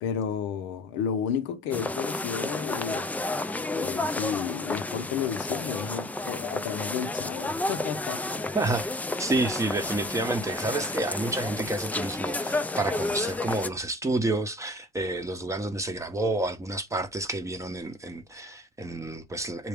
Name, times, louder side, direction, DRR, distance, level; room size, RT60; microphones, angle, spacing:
voice 1, 0.0-3.1 3.7-8.4, left 8 dB, 85° left, 0.8 m, -32 dB
sound 1, 1.7-13.7, left 2 dB, 10° left, 0.3 m, -31 dB
voice 2, 8.5-19.7, right 2 dB, 15° right, 0.7 m, -30 dB
6.7 x 2.3 x 3.4 m
cardioid pair, 95°, 19 cm